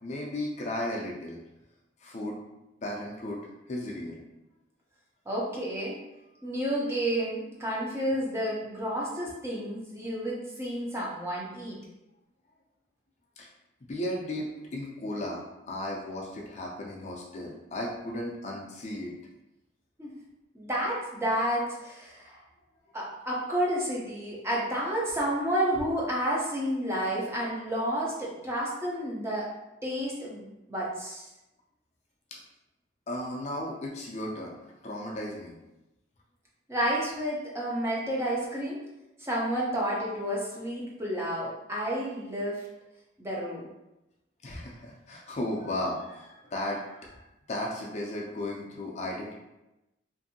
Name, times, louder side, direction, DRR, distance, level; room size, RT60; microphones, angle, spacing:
voice 1, 0.0-1.4 2.0-2.4 2.8-3.4 3.7-4.2 13.4-13.5 13.8-19.1 32.3-32.4 33.1-35.6 44.4-49.3, left 1 dB, 35° left, -2 dB, 0.4 m, -35 dB
voice 2, 5.3-6.0 6.4-11.8 20.0-20.1 20.5-22.4 22.9-29.5 29.8-31.3 36.7-38.8 39.2-42.7 43.2-43.7, equal, 15° right, -5 dB, 0.5 m, -30 dB
2.6 x 2.5 x 2.6 m, 0.95 s
head